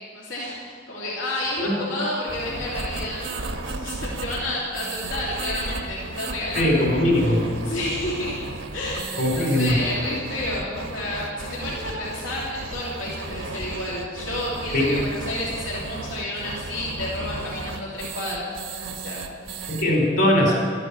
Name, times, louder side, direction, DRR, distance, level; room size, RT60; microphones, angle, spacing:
voice 1, 0.1-7.4 7.6-8.4 8.7-19.7, left 1 dB, 80° left, -6 dB, 2.9 m, -31 dB
sound 1, 2.3-19.8, right 3 dB, 80° right, 1.2 m, -34 dB
voice 2, 6.5-7.5 9.2-9.8 14.7-15.0 19.7-20.5, left 1 dB, 55° left, 0 dB, 4.2 m, -20 dB
13.0 x 9.5 x 8.6 m, 2.1 s
head